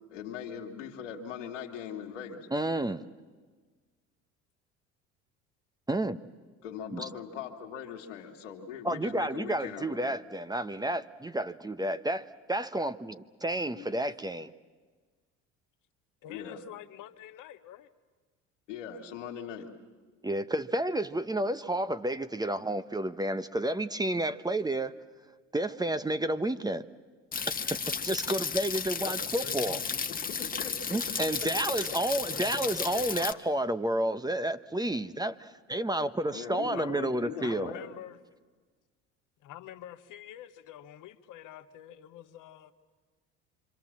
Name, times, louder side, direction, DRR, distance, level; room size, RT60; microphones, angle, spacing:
voice 1, 0.1-2.5 6.6-10.1 13.7-13.8 16.3-16.6 18.7-19.7 29.0-29.2 30.1-31.2 36.3-37.9, left 7 dB, 90° left, 2 dB, 2.5 m, -40 dB
voice 2, 2.5-3.1 5.9-6.2 6.9-7.1 8.8-14.5 20.2-24.9 25.5-26.9 27.6-29.8 30.9-37.7, right 1 dB, 10° right, 11 dB, 0.9 m, -31 dB
voice 3, 16.2-17.9 29.4-30.1 32.3-33.5 36.7-38.2 39.4-42.7, left 12 dB, 60° left, 8 dB, 1.5 m, -47 dB
sound 1, 27.3-33.3, left 5 dB, 25° left, 1.3 m, -34 dB
26.0 x 26.0 x 7.4 m, 1.4 s
hypercardioid pair, 70°, 36 cm